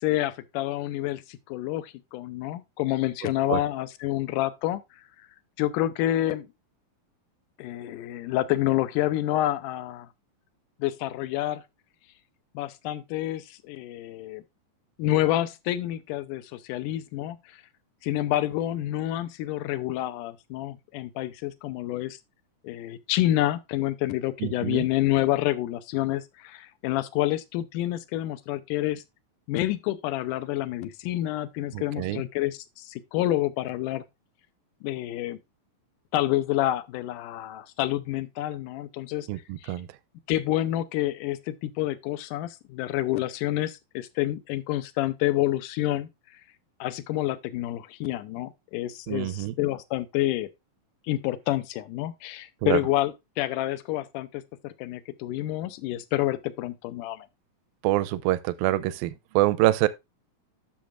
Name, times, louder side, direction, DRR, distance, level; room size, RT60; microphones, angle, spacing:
voice 1, 0.0-4.8 5.6-6.5 7.6-10.1 10.8-11.6 12.5-14.4 15.0-17.6 18.0-22.2 22.6-29.0 29.5-34.0 34.8-35.4 36.1-39.3 39.6-39.8 40.3-46.1 46.8-50.5 51.1-57.3, left 14 dB, 75° left, 2.1 m, -28 dB
voice 2, 24.4-24.8 31.7-32.2 39.3-39.9 49.1-49.5 52.6-52.8 57.8-59.9, right 16 dB, 85° right, 2.4 m, -25 dB
10.5 x 6.9 x 2.5 m
omnidirectional pair, 4.1 m